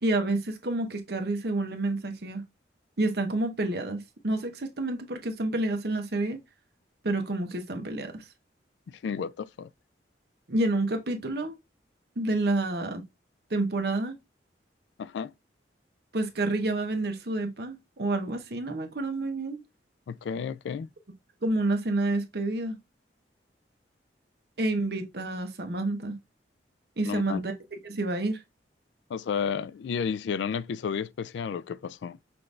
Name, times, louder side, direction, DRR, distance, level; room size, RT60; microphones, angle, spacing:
voice 1, 0.0-2.4 3.0-6.4 7.0-8.2 10.5-11.6 12.2-13.0 13.5-14.1 16.1-19.6 21.4-22.8 24.6-26.2 27.0-27.5 27.8-28.4, right 2 dB, 60° right, 0.9 m, -29 dB
voice 2, 9.0-9.7 15.0-15.3 20.1-20.9 27.0-27.4 29.1-32.2, left 6 dB, 75° left, 0.3 m, -32 dB
5.7 x 2.6 x 3.3 m
head